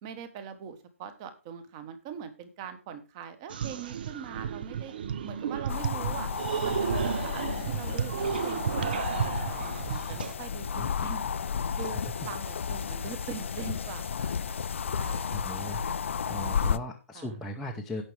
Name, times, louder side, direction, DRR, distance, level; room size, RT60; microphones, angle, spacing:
voice 1, 0.0-4.9 5.2-6.3 6.6-11.3 11.7-14.3 14.9-15.6 17.1-17.3, right 7 dB, 20° right, 10 dB, 1.2 m, -42 dB
sound 1, 3.5-10.3, right 7 dB, 40° right, 0.7 m, -32 dB
sound 2, 5.7-16.8, left 6 dB, 55° left, 0.5 m, -32 dB
voice 2, 15.3-15.8 16.3-18.0, left 1 dB, ahead, -3 dB, 0.8 m, -38 dB
17.0 x 6.1 x 3.4 m, 0.30 s
hypercardioid pair, 165°, 8 cm